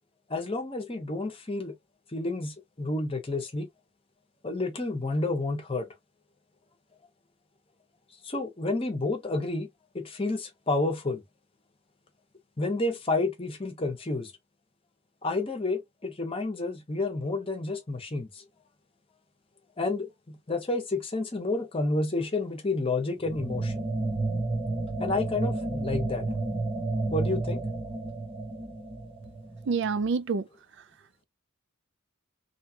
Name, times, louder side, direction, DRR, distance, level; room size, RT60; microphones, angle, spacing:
voice 1, 0.3-1.7 2.1-3.7 4.4-5.9 8.2-9.7 9.9-11.2 12.6-14.3 15.2-18.4 19.8-23.9 25.0-26.3 27.1-27.6, left 2 dB, 25° left, 0.8 m, -30 dB
sound 1, 23.2-30.0, right 2 dB, 25° right, 0.8 m, -31 dB
voice 2, 29.7-30.5, right 5 dB, 55° right, 0.3 m, -27 dB
2.8 x 2.3 x 2.7 m
head